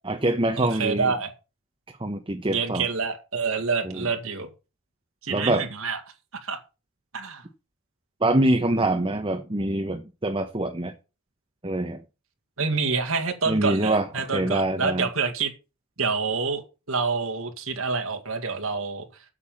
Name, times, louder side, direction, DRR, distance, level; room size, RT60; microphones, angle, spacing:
voice 1, 0.1-1.1 2.0-2.8 3.8-4.1 5.3-5.7 8.2-10.9 11.6-12.0 13.5-15.1, right 1 dB, 25° right, 1.1 m, -25 dB
voice 2, 0.6-1.3 2.5-4.5 5.2-6.0 6.4-6.6 7.1-7.4 12.6-15.5 16.0-16.6 16.9-19.0, right 4 dB, 80° right, 2.2 m, -27 dB
8.5 x 7.1 x 7.2 m
head